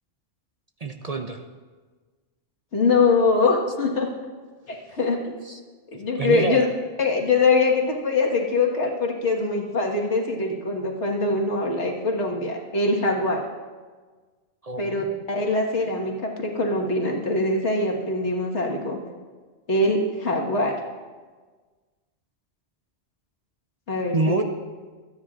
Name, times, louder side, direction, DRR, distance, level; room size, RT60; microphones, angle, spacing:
voice 1, 0.8-1.4 5.5-5.6 6.2-6.6 14.6-15.2 24.1-24.4, right 3 dB, 45° right, 5 dB, 0.6 m, -27 dB
voice 2, 2.7-4.1 4.7-5.3 5.9-6.7 7.0-13.4 14.8-19.0 19.7-20.7 23.9-24.4, left 3 dB, 80° left, 0 dB, 1.9 m, -23 dB
25.5 x 9.5 x 2.5 m, 1.4 s
omnidirectional pair, 1.2 m